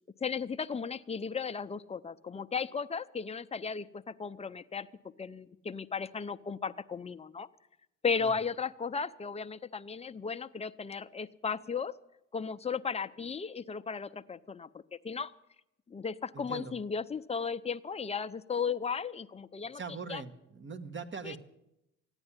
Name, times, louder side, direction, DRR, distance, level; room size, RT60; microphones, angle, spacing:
voice 1, 0.2-4.9 5.2-7.5 8.0-11.9 12.3-15.3 15.9-19.8 20.1-20.2 21.2-21.4, left 5 dB, 20° left, 11 dB, 0.6 m, -35 dB
voice 2, 16.3-16.7 19.7-21.4, right 5 dB, 40° right, 9 dB, 1.4 m, -41 dB
14.5 x 9.9 x 9.8 m, 0.86 s
cardioid pair, 90°, 30 cm